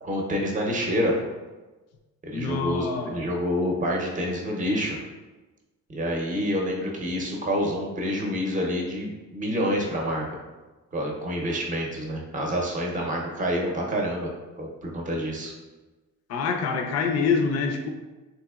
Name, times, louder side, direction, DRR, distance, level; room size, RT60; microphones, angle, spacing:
voice 1, 0.0-1.1 2.2-5.0 5.9-10.4 10.9-14.3 14.6-15.5, equal, 25° right, 0 dB, 0.7 m, -27 dB
voice 2, 2.3-3.2 16.3-17.9, left 5 dB, 55° left, 5 dB, 0.5 m, -26 dB
3.5 x 2.9 x 2.3 m, 1.2 s
cardioid pair, 90°, 30 cm